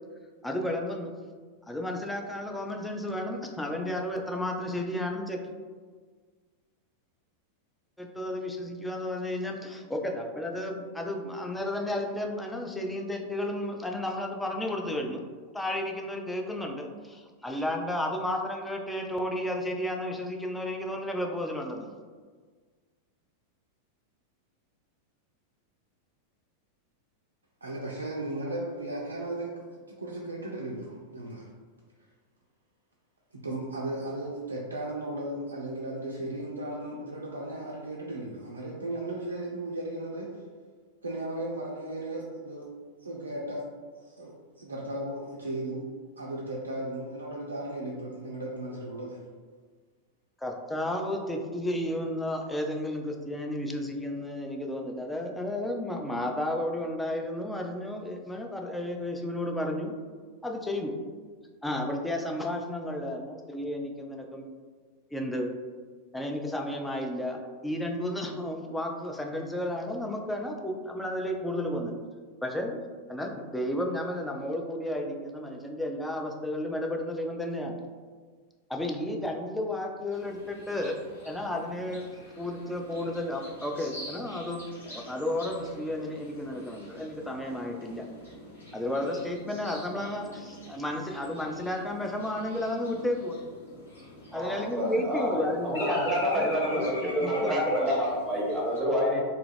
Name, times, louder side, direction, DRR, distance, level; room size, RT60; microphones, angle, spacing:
voice 1, 0.4-1.1 1.7-5.4 8.0-15.2 15.5-22.0 50.4-59.9 60.4-60.9 61.6-64.5 65.1-65.5 66.1-67.4 67.6-71.9 72.4-72.8 73.1-77.8 78.7-80.9 81.2-82.0 82.4-88.1 88.7-93.4 94.3-97.7, left 1 dB, 5° left, 2 dB, 0.4 m, -32 dB
voice 2, 27.6-31.5 33.3-40.4 41.0-42.7 43.0-43.6 44.0-45.8 46.2-49.2, right 1 dB, 75° right, -4 dB, 0.4 m, -36 dB
sound 1, 80.1-98.8, left 1 dB, 75° left, 0.9 m, -45 dB
voice 3, 94.3-99.2, equal, 10° right, -5 dB, 0.9 m, -28 dB
2.7 x 2.4 x 3.1 m, 1.5 s
figure-of-eight pair, 90°, 0 cm